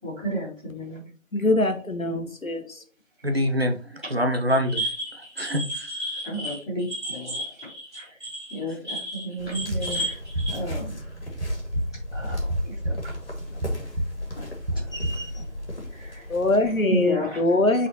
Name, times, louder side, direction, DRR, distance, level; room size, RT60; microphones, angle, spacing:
voice 1, 0.0-1.0 4.0-4.1 6.2-7.4 7.9-8.2 8.5-10.2 10.5-11.0 12.1-13.1 14.4-15.5 15.9-16.3 16.6-17.5, equal, 5° left, -18 dB, 1.9 m, -33 dB
voice 2, 1.3-2.8 16.3-17.9, left 2 dB, 75° left, 6 dB, 1.3 m, -23 dB
voice 3, 3.2-4.9 5.2-5.9, equal, 45° right, 5 dB, 0.8 m, -25 dB
sound 1, 4.5-10.6, right 1 dB, 20° right, 3.1 m, -33 dB
sound 2, 9.4-16.8, left 1 dB, 45° left, 2.2 m, -36 dB
sound 3, 9.6-15.7, right 1 dB, 65° right, 1.9 m, -32 dB
7.8 x 4.1 x 2.9 m, 0.38 s
figure-of-eight pair, 175°, 41 cm